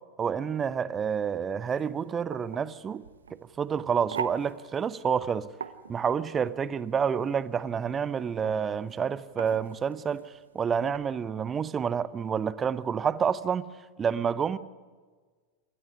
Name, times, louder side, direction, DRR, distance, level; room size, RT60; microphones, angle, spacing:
voice 1, 0.2-3.0 3.3-5.5 5.9-13.7 14.0-14.6, right 7 dB, 20° right, 0.8 m, -29 dB
sound 1, 1.7-11.0, right 7 dB, 70° right, 1.0 m, -43 dB
27.0 x 13.0 x 9.9 m
figure-of-eight pair, 90°, 0 cm